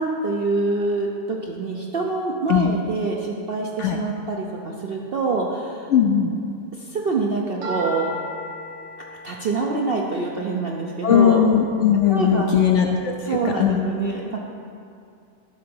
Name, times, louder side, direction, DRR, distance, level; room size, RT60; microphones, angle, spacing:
voice 1, 0.0-5.9 6.8-8.1 9.2-11.4 12.1-12.6 13.2-14.4, right 3 dB, 60° right, -1 dB, 0.6 m, -25 dB
voice 2, 5.9-6.3 11.0-13.8, left 8 dB, 65° left, 3 dB, 0.7 m, -19 dB
sound 1, 7.6-11.7, equal, 85° right, 2.0 m, -36 dB
11.0 x 3.8 x 7.0 m, 2.4 s
omnidirectional pair, 1.7 m